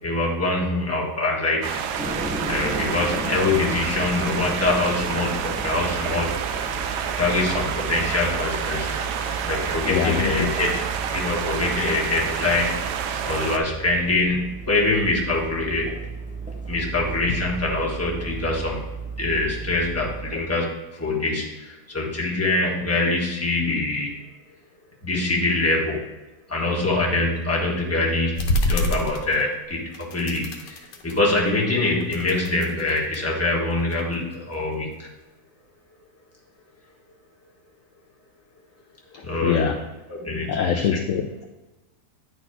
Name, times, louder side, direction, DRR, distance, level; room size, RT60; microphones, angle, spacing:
voice 1, 0.0-1.8 2.5-6.3 7.1-9.0 9.4-10.7 11.1-12.8 13.2-15.9 16.7-18.8 19.2-24.1 25.0-26.0 26.5-35.1 39.2-39.7 40.1-40.9, left 2 dB, 10° left, -4 dB, 1.3 m, -24 dB
sound 1, 1.6-13.6, right 8 dB, 75° right, 1.1 m, -29 dB
sound 2, 2.0-20.3, right 3 dB, 10° right, 0.6 m, -34 dB
voice 2, 9.8-10.5 39.1-39.8 40.5-41.5, left 8 dB, 70° left, 4 dB, 0.7 m, -24 dB
sound 3, 28.4-29.7 29.9-31.6 31.9-33.2 33.8-35.0, left 1 dB, 85° left, 1.6 m, -28 dB
10.0 x 4.2 x 4.5 m, 1.1 s
omnidirectional pair, 1.8 m